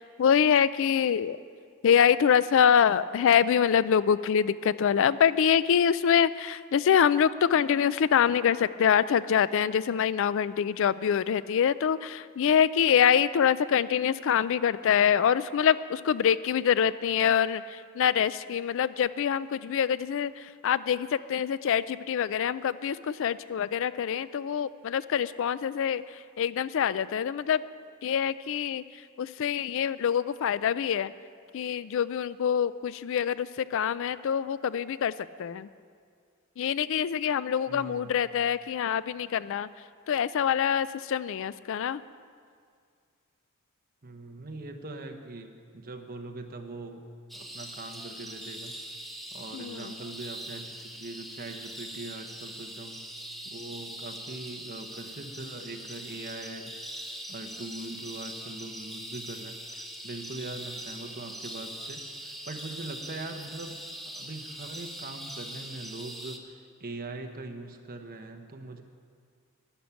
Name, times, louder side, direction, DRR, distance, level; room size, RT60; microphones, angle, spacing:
voice 1, 0.0-1.4 1.8-20.3 20.6-26.0 26.4-27.6 28.0-28.8 29.2-31.1 31.5-35.1 35.4-35.7 36.6-39.7 40.1-42.0 49.5-49.8, left 8 dB, 65° left, 16 dB, 0.4 m, -25 dB
voice 2, 37.7-38.3 44.0-47.1 47.3-48.8 49.3-53.0 53.5-63.8 64.0-68.8, right 2 dB, 45° right, 5 dB, 1.0 m, -42 dB
sound 1, 47.3-66.4, right 1 dB, ahead, 0.9 m, -42 dB
11.5 x 10.5 x 7.1 m, 2.1 s
head